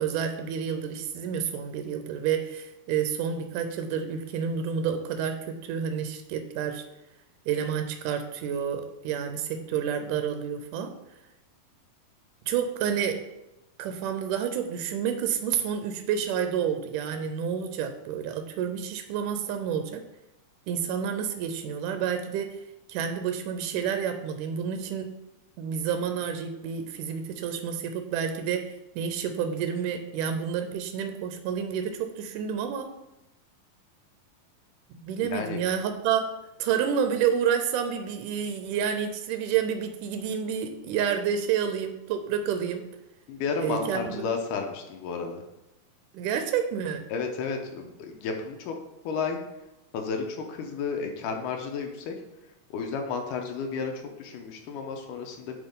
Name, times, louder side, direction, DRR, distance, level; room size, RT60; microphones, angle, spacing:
voice 1, 0.0-6.8 7.5-10.9 12.5-13.2 13.8-20.0 20.7-22.5 22.9-25.1 25.6-28.7 29.0-32.9 34.9-36.3 36.6-42.8 43.6-44.3 46.1-47.0, right 8 dB, 80° right, 7 dB, 1.9 m, -29 dB
voice 2, 35.2-35.6 43.3-45.4 47.1-48.7 49.1-49.4 49.9-52.2 52.7-55.5, left 5 dB, 75° left, 3 dB, 2.1 m, -32 dB
9.3 x 4.0 x 3.6 m, 0.94 s
omnidirectional pair, 4.1 m